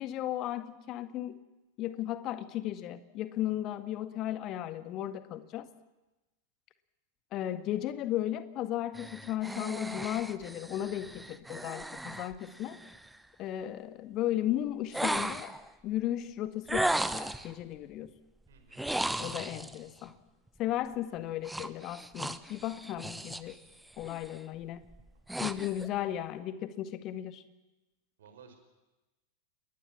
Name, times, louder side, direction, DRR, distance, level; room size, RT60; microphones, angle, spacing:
voice 1, 0.0-1.4 1.8-5.7 7.3-12.8 13.4-15.5 15.8-18.1 19.2-20.1 20.6-23.6 24.0-24.8 25.4-27.4, left 12 dB, 35° left, 11 dB, 1.7 m, -35 dB
sound 1, 8.9-13.2 14.9-15.7 16.7-17.5 18.7-19.8 21.4-23.5 23.9-24.3 24.8-25.9, right 1 dB, 5° right, 1.0 m, -36 dB
voice 2, 18.5-19.0 23.6-23.7 26.0-26.1 28.2-28.6, right 7 dB, 60° right, 6 dB, 5.6 m, -56 dB
29.5 x 21.0 x 7.4 m, 1.1 s
figure-of-eight pair, 90°, 0 cm